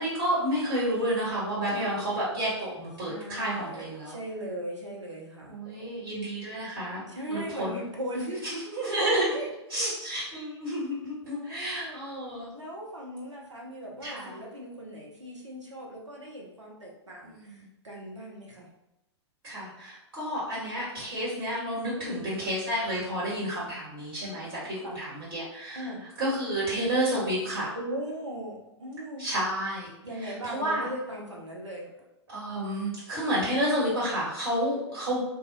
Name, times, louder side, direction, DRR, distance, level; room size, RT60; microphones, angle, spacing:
voice 1, 0.0-4.2 5.5-7.0 7.3-7.8 8.7-9.3 9.7-12.5 14.0-14.3 17.2-17.6 19.4-25.8 26.2-27.7 29.2-29.9 30.2-30.9 32.3-35.2, right 1 dB, 50° right, -8 dB, 1.4 m, -30 dB
voice 2, 1.6-2.1 3.1-6.0 7.1-8.5 8.9-9.1 9.3-10.0 11.2-12.0 12.5-18.7 22.0-22.3 24.3-25.0 25.8-26.0 27.7-29.3 30.0-31.9, right 1 dB, 85° right, -2 dB, 0.7 m, -39 dB
2.4 x 2.1 x 3.7 m, 0.89 s
figure-of-eight pair, 110°, 15 cm